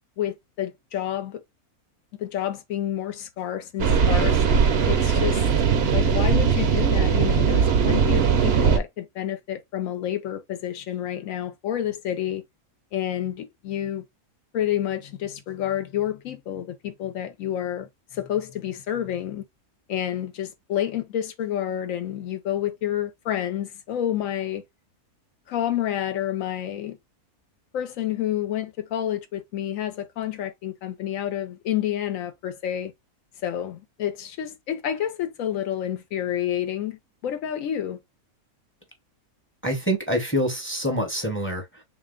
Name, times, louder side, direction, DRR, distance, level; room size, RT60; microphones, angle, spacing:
voice 1, 0.2-1.4 2.2-4.4 4.9-5.5 5.9-12.4 12.9-14.0 14.5-19.5 19.9-24.6 25.5-27.0 27.7-32.9 33.4-38.0, left 11 dB, 70° left, 1.0 m, -29 dB
sound 1, 3.8-8.8, right 6 dB, 55° right, 0.8 m, -20 dB
voice 2, 39.6-41.8, equal, 10° left, 0.7 m, -26 dB
3.3 x 2.7 x 3.6 m
omnidirectional pair, 1.6 m